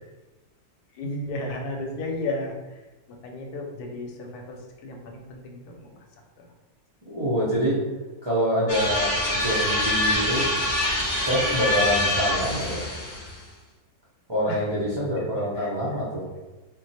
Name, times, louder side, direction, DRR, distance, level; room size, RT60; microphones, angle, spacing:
voice 1, 0.9-2.8 3.1-6.0 6.4-6.5 14.5-14.7 15.2-15.7, left 2 dB, 85° left, 2 dB, 1.1 m, -34 dB
voice 2, 7.0-7.8 8.2-10.5 11.1-12.8 14.3-16.2, equal, 40° right, -9 dB, 0.3 m, -26 dB
sound 1, 8.7-13.4, left 1 dB, 45° left, 0.5 m, -25 dB
2.4 x 2.2 x 4.0 m, 1.1 s
omnidirectional pair, 1.6 m